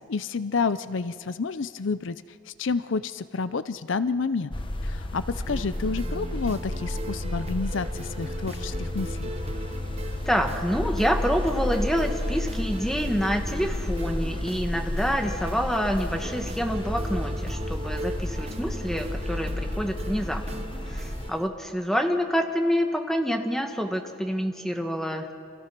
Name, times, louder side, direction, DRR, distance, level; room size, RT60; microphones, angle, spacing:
voice 1, 0.0-2.2 2.5-4.5 4.8-9.3, left 4 dB, 65° left, 14 dB, 0.6 m, -29 dB
sound 1, 4.5-21.3, left 1 dB, 25° left, 1.1 m, -32 dB
sound 2, 5.5-21.5, right 1 dB, 30° right, 0.9 m, -39 dB
voice 2, 10.2-20.6 20.9-25.3, equal, ahead, 4 dB, 1.7 m, -27 dB
29.5 x 27.5 x 6.0 m, 2.4 s
head